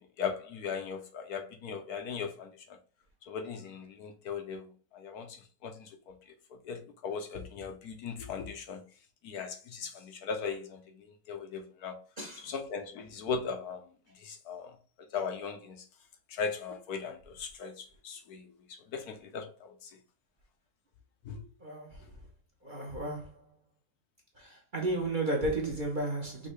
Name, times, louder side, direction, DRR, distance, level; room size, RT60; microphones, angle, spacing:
voice 1, 0.2-2.5 3.3-6.1 6.6-8.8 9.2-12.0 12.4-13.8 14.2-14.7 15.1-15.8 16.3-18.4 18.7-19.9 21.3-21.4, left 5 dB, 70° left, 1.3 m, -38 dB
voice 2, 22.6-23.3 24.7-26.5, right 2 dB, 35° right, 1.0 m, -32 dB
5.5 x 2.9 x 3.2 m
omnidirectional pair, 1.8 m